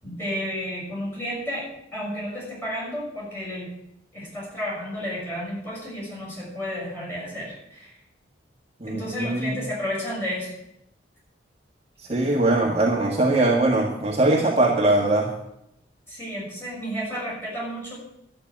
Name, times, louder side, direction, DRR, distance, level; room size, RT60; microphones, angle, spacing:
voice 1, 0.0-3.7 4.1-7.9 8.9-10.5 16.1-17.9, equal, 10° left, -6 dB, 6.4 m, -32 dB
voice 2, 8.8-9.6 12.1-15.3, right 2 dB, 30° right, -1 dB, 1.5 m, -21 dB
12.0 x 6.8 x 9.3 m, 0.80 s
head